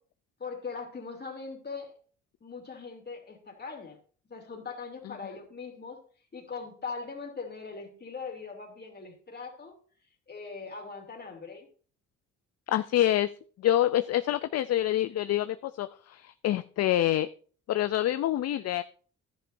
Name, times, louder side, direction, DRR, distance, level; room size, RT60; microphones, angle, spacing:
voice 1, 0.4-1.9 2.4-4.0 4.3-6.0 6.3-9.8 10.3-11.7, left 4 dB, 35° left, 2 dB, 2.7 m, -40 dB
voice 2, 12.7-13.3 13.6-17.3 17.7-18.8, left 13 dB, 55° left, 12 dB, 0.5 m, -26 dB
11.5 x 10.5 x 2.6 m, 0.43 s
cardioid pair, 90°, 30 cm